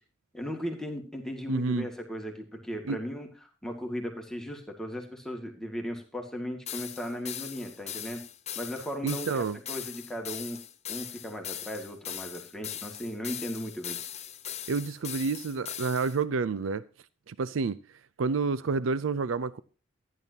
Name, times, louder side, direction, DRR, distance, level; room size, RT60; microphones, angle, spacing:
voice 1, 0.3-3.3 3.6-8.2 8.6-10.6 10.9-14.0, equal, 5° left, 2.0 m, -37 dB
voice 2, 1.5-1.9 2.9-3.0 9.0-9.6 14.7-16.8 17.3-17.8 18.2-19.6, right 4 dB, 85° right, 0.5 m, -29 dB
sound 1, 6.7-16.2, left 10 dB, 35° left, 0.9 m, -40 dB
14.5 x 10.5 x 2.8 m
head